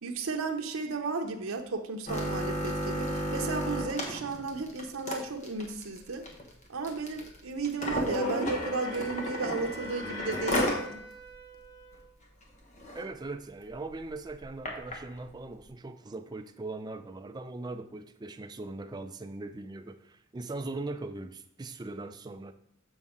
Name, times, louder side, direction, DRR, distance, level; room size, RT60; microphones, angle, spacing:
voice 1, 0.0-6.2 6.7-11.0, right 4 dB, 80° right, 3 dB, 0.8 m, -34 dB
sound 1, 2.1-10.8 11.3-11.4 11.7-12.0 12.4-12.5 12.8-13.0 13.7-15.0 15.7-15.8, equal, 35° left, 1.1 m, -33 dB
Wind instrument woodwind instrument, 8.1-12.1, left 1 dB, 80° left, 1.9 m, -46 dB
voice 2, 12.9-22.5, right 2 dB, 20° right, 8 dB, 0.3 m, -40 dB
7.3 x 5.3 x 3.6 m, 0.71 s
head